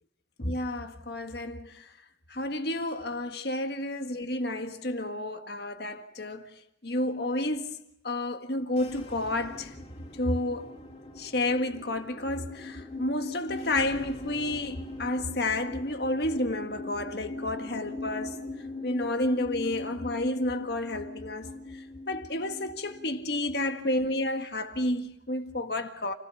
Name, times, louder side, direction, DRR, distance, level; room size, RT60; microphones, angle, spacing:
voice 1, 0.4-1.9 2.3-6.5 6.8-9.7 10.2-10.8 11.2-26.1, left 1 dB, 55° left, 1.7 m, -31 dB
sound 1, 8.7-24.2, left 2 dB, 35° left, 3.1 m, -41 dB
29.0 x 16.5 x 7.0 m
head